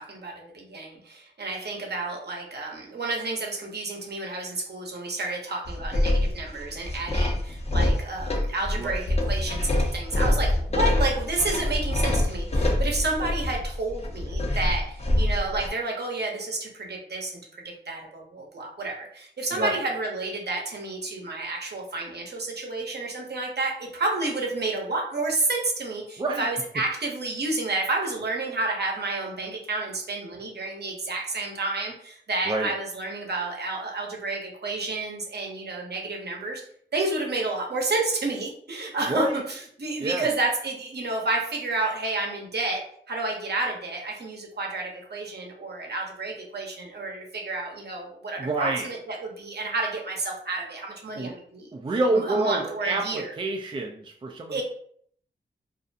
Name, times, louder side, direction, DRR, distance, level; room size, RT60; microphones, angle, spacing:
voice 1, 0.0-17.4 17.6-36.6 36.9-51.7 52.1-53.3 54.5-54.6, right 2 dB, 60° right, 0 dB, 0.8 m, -30 dB
sound 1, 5.7-15.7, left 1 dB, 35° left, 0.6 m, -25 dB
voice 2, 8.8-9.1 19.5-19.8 26.2-26.5 32.5-32.7 39.1-39.4 40.0-40.3 48.4-48.9 51.1-51.3 51.7-54.6, right 2 dB, 25° right, 2 dB, 0.4 m, -27 dB
2.5 x 2.1 x 2.6 m, 0.63 s
cardioid pair, 45°, 19 cm